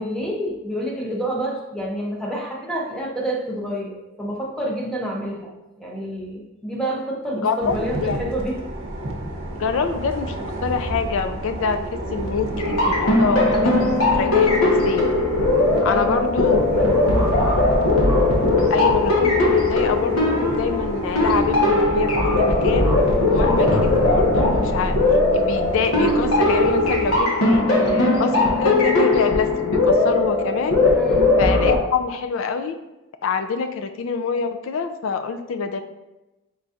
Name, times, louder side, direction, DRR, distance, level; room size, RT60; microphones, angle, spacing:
voice 1, 0.0-5.5 5.8-8.6 15.9-16.4 16.8-17.7 30.9-31.4, equal, 5° left, -3 dB, 0.5 m, -29 dB
voice 2, 7.4-8.2 9.5-10.4 10.6-13.8 14.2-15.1 15.8-16.7 18.7-25.0 25.3-30.8 31.4-32.8 33.2-35.8, left 5 dB, 60° left, 9 dB, 0.3 m, -25 dB
sound 1, 7.6-27.2, right 1 dB, 55° right, 0.7 m, -31 dB
sound 2, 12.6-31.8, left 2 dB, 75° left, 1.0 m, -19 dB
4.3 x 3.9 x 2.4 m, 1.0 s
head